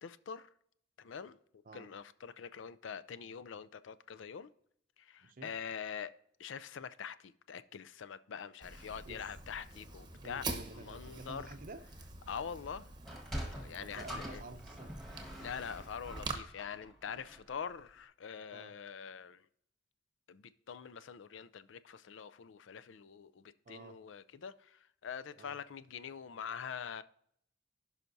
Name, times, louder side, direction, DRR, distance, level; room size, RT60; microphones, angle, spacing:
voice 1, 0.0-0.5 1.0-1.4 1.7-4.5 5.0-6.1 6.4-10.4 10.7-11.5 12.3-12.9 13.5-14.4 15.4-19.5 20.3-27.0, left 7 dB, 75° left, 0.4 m, -44 dB
Fire, 8.6-16.4, right 3 dB, 25° right, 0.9 m, -46 dB
voice 2, 9.1-9.4 10.1-11.8 13.8-15.0 18.5-18.7 23.7-24.0 25.4-25.6, right 2 dB, 45° right, 0.6 m, -50 dB
Sliding door, 12.9-17.6, equal, ahead, 1.5 m, -45 dB
15.5 x 5.7 x 2.7 m
head